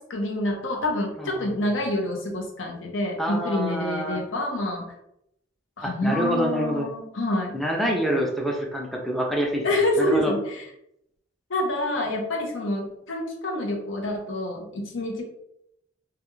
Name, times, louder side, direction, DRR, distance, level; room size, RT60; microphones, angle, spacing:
voice 1, 0.0-4.9 5.8-7.6 9.6-10.7 11.5-15.2, left 1 dB, 90° left, 1 dB, 0.7 m, -27 dB
voice 2, 1.2-1.5 3.2-4.2 5.8-6.9 7.5-10.3, equal, ahead, -1 dB, 0.4 m, -27 dB
2.3 x 2.3 x 3.0 m, 0.79 s
head